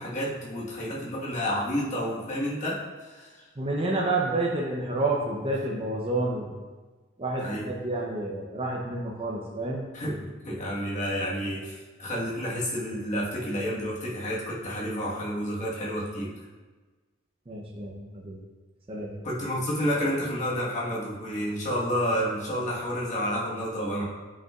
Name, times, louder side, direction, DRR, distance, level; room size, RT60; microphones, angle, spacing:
voice 1, 0.0-3.4 7.4-7.7 9.9-16.3 19.2-24.0, equal, 35° left, -5 dB, 1.5 m, -30 dB
voice 2, 3.6-6.5 7.2-9.9 17.5-18.4 18.9-19.1, right 2 dB, 25° right, -3 dB, 0.7 m, -29 dB
9.1 x 5.5 x 2.4 m, 1.3 s
head